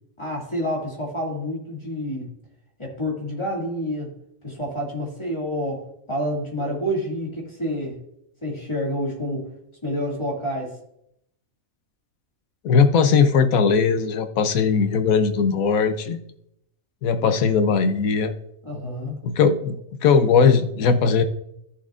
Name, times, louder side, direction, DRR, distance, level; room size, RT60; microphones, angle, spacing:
voice 1, 0.2-2.3 2.8-4.1 4.4-8.0 8.4-9.5 9.8-10.8 18.6-19.2, equal, 20° left, -3 dB, 2.4 m, -28 dB
voice 2, 12.6-16.2 17.0-18.3 19.2-21.2, left 5 dB, 80° left, 9 dB, 1.2 m, -19 dB
14.0 x 7.1 x 2.5 m, 0.76 s
omnidirectional pair, 1.4 m